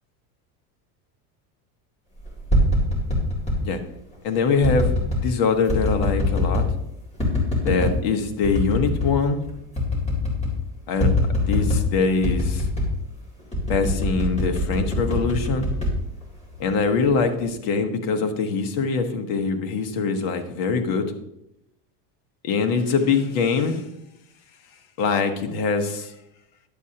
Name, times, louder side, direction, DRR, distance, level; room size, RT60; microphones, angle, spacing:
sound 1, 2.3-3.6 4.6-5.3 5.7-6.7 7.2-8.0 8.4-9.2 9.4-9.5 9.8-10.6 11.0-11.9 12.2-13.0 13.5-16.6 17.0-17.5, left 1 dB, 15° left, 2.3 m, -23 dB
voice 1, 4.2-6.6 7.6-9.4 10.9-11.1 11.4-12.7 13.7-15.7 16.6-21.1 22.4-23.8 25.0-26.1, left 4 dB, 50° left, 6 dB, 1.2 m, -23 dB
10.5 x 7.6 x 2.8 m, 0.82 s
cardioid pair, 160°, 44 cm